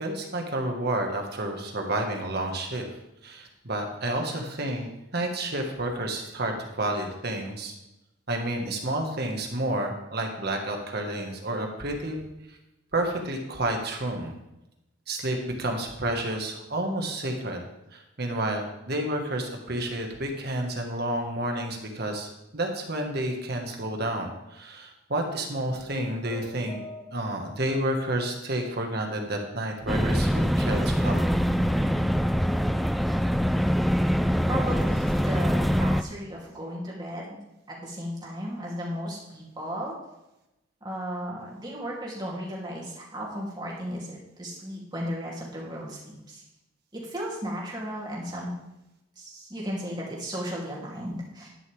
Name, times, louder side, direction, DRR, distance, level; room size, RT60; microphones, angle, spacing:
voice 1, 0.0-2.9 3.2-7.7 8.3-12.2 12.9-14.3 15.1-26.8 27.1-31.2, right 1 dB, 55° right, 2 dB, 1.8 m, -30 dB
sound 1, 25.5-27.6, equal, 15° left, 4.0 m, -44 dB
sound 2, 29.9-36.0, equal, ahead, 0.4 m, -24 dB
voice 2, 34.5-37.4 37.7-39.9 40.8-46.4 46.9-48.5 49.2-51.5, equal, 20° right, -5 dB, 3.2 m, -35 dB
12.0 x 10.5 x 3.6 m, 0.93 s
head